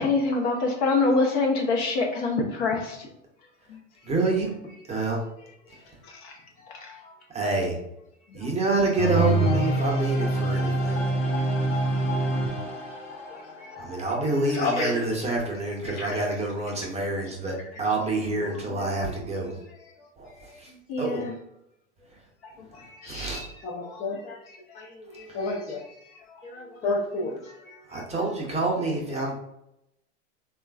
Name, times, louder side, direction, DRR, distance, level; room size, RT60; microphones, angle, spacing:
voice 1, 0.0-3.0 3.7-3.8 5.4-5.5 6.0-6.3 6.6-7.1 8.3-8.8 10.0-10.4 10.9-11.2 13.3-14.0 15.9-16.1 18.5-18.6 20.4-21.3 22.4-23.4 23.8-24.9 25.1-25.7 26.2-26.4 27.4-28.0 28.5-28.6 29.2-29.3, left 3 dB, 60° left, 1 dB, 0.8 m, -29 dB
voice 2, 4.1-4.5 4.9-5.2 7.3-7.7 8.3-11.0 13.8-19.5 20.2-20.3 21.0-21.2 23.1-23.4 27.9-29.3, right 2 dB, 15° right, -1 dB, 0.6 m, -27 dB
sound 1, 9.0-14.7, right 2 dB, 90° left, 0.9 m, -26 dB
voice 3, 14.5-15.0 15.8-16.3 18.4-19.3 23.0-24.4 24.7-24.9 25.3-25.8 26.5-27.4, left 3 dB, 20° left, -4 dB, 0.4 m, -31 dB
3.1 x 2.4 x 2.3 m, 0.81 s
hypercardioid pair, 100°, 37 cm